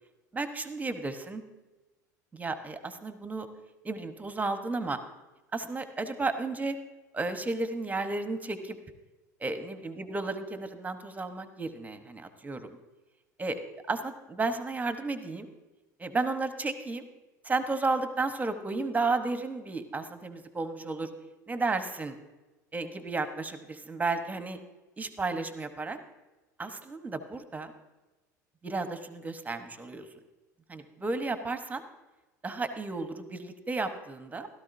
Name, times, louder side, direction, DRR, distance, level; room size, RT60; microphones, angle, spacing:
voice 1, 0.3-1.4 2.3-3.5 3.8-5.0 5.5-6.8 7.1-8.8 9.4-12.8 13.4-13.6 13.9-15.5 16.0-17.1 17.4-21.1 21.5-22.2 22.7-24.6 25.0-26.0 26.6-27.7 28.6-30.1 30.7-31.8 32.4-34.5, right 3 dB, 15° right, 9 dB, 1.1 m, -33 dB
16.0 x 13.0 x 2.7 m, 1.1 s
hypercardioid pair, 75°, 10 cm